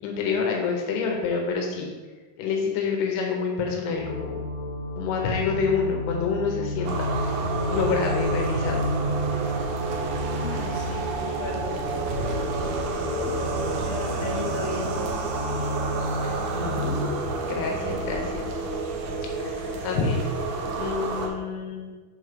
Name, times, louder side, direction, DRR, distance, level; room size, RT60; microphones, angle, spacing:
voice 1, 0.0-1.9 2.4-4.4 5.0-7.1 7.7-8.8 16.2-17.2 17.4-18.4 19.4-20.2 20.7-21.9, left 5 dB, 85° left, 1 dB, 2.9 m, -27 dB
sound 1, 3.9-17.0, left 1 dB, 40° right, 1.7 m, -32 dB
sound 2, 6.8-21.3, right 3 dB, 85° right, 1.7 m, -30 dB
voice 2, 10.3-12.3 13.8-14.9 17.6-18.0, left 2 dB, 55° left, -6 dB, 2.9 m, -36 dB
7.0 x 4.1 x 5.0 m, 1.4 s
omnidirectional pair, 4.6 m